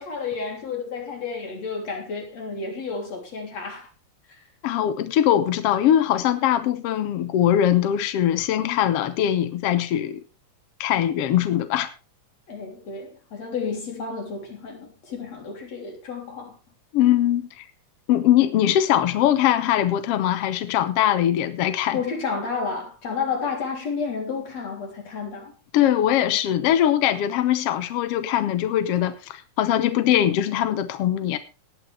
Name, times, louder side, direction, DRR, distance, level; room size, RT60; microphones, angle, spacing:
voice 1, 0.0-3.8 8.6-8.9 12.5-16.6 21.9-25.5, left 5 dB, 50° left, 4.6 m, -31 dB
voice 2, 4.6-10.2 10.8-11.9 16.9-17.6 18.1-22.0 25.7-31.4, left 11 dB, 70° left, 1.4 m, -21 dB
18.0 x 9.8 x 3.5 m
omnidirectional pair, 3.9 m